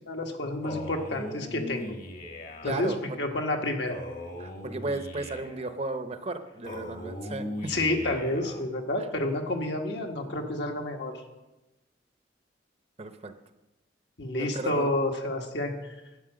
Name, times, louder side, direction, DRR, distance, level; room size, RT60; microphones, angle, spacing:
voice 1, 0.1-1.9 2.6-4.0 7.7-11.1 14.2-16.0, left 1 dB, 75° left, 2 dB, 1.7 m, -29 dB
Male speech man speaking, 0.6-2.8 3.9-5.7 6.6-8.6, left 1 dB, 45° left, 1.3 m, -39 dB
voice 2, 2.6-3.2 4.4-7.8 13.0-13.3 14.4-14.9, right 2 dB, 35° right, 9 dB, 0.7 m, -35 dB
11.5 x 9.0 x 6.3 m, 1.0 s
head